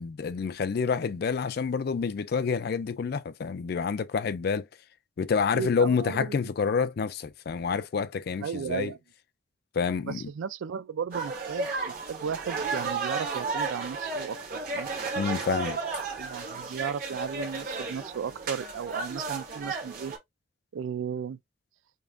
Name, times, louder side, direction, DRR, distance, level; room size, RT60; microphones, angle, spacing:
voice 1, 0.0-4.7 5.2-8.9 9.7-10.3 15.1-15.8, left 5 dB, 50° left, 0.3 m, -28 dB
voice 2, 5.5-6.3 8.4-9.0 10.0-14.9 16.2-20.1 20.7-21.4, right 7 dB, 75° right, 0.3 m, -35 dB
sound 1, 11.1-20.2, right 4 dB, 45° right, 1.3 m, -33 dB
5.2 x 2.5 x 2.3 m
head